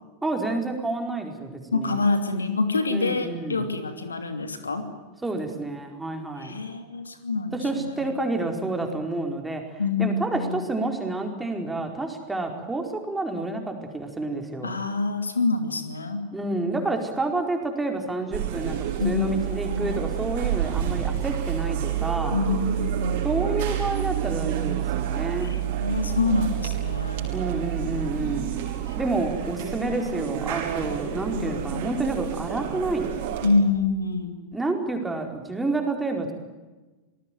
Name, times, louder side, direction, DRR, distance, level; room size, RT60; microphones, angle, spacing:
voice 1, 0.2-2.0 2.9-3.7 5.2-6.5 7.5-14.8 16.3-22.4 23.2-25.6 27.3-28.5 29.0-33.1 34.5-36.3, right 2 dB, 10° right, 3 dB, 4.7 m, -29 dB
voice 2, 1.7-4.9 6.4-8.1 9.8-10.7 14.6-16.2 19.0-20.0 22.3-23.3 25.4-27.3 28.9-29.0 31.3-32.0 33.4-34.4, left 3 dB, 75° left, 8 dB, 2.8 m, -26 dB
sound 1, 18.3-33.5, right 11 dB, 50° right, 5.3 m, -29 dB
26.5 x 19.5 x 9.3 m, 1.2 s
figure-of-eight pair, 90°, 0 cm